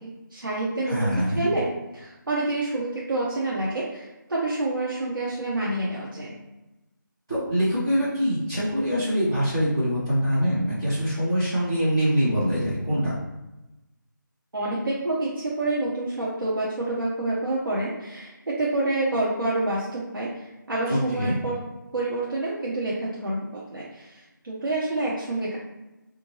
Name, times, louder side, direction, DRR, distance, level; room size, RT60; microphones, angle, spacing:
voice 1, 0.0-6.3 14.5-21.6 21.9-25.6, right 2 dB, 85° right, -6 dB, 0.8 m, -28 dB
voice 2, 0.9-1.5 7.3-13.1 20.9-21.4, equal, 10° right, -14 dB, 1.2 m, -24 dB
3.5 x 2.6 x 2.9 m, 1.0 s
figure-of-eight pair, 180°, 11 cm